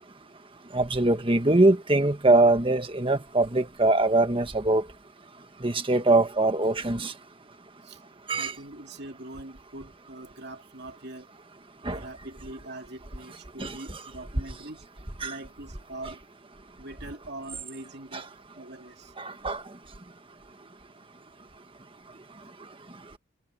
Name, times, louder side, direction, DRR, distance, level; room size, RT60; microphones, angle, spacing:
voice 1, 0.7-4.8 5.6-7.1 8.3-8.5 11.8-12.0 13.6-14.0 15.2-15.3 18.1-18.2 19.2-19.6, right 2 dB, 25° right, 1.5 m, -23 dB
voice 2, 8.4-11.3 11.9-14.9 15.2-16.2 16.8-18.3 18.6-19.1, right 1 dB, 55° right, 2.8 m, -42 dB
head